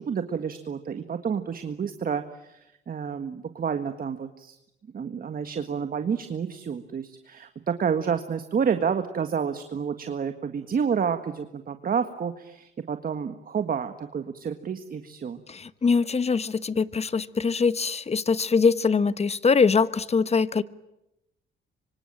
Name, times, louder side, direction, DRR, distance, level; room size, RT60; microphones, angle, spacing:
voice 1, 0.0-4.6 4.9-15.4, right 7 dB, 45° right, 8 dB, 1.7 m, -29 dB
voice 2, 15.5-20.6, left 5 dB, 30° left, 15 dB, 1.2 m, -23 dB
25.5 x 25.0 x 8.9 m, 0.88 s
cardioid pair, 90°, 20 cm